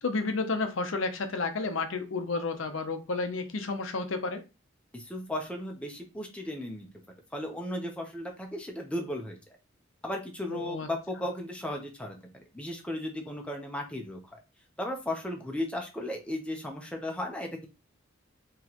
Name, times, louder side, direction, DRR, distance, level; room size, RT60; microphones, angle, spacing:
voice 1, 0.0-4.4 10.5-10.9, left 3 dB, 75° left, 7 dB, 0.7 m, -31 dB
voice 2, 4.9-6.9 7.3-9.4 10.0-12.2 12.5-14.4 14.8-17.7, left 1 dB, 5° left, 1 dB, 0.7 m, -35 dB
4.1 x 3.0 x 2.9 m, 0.28 s
head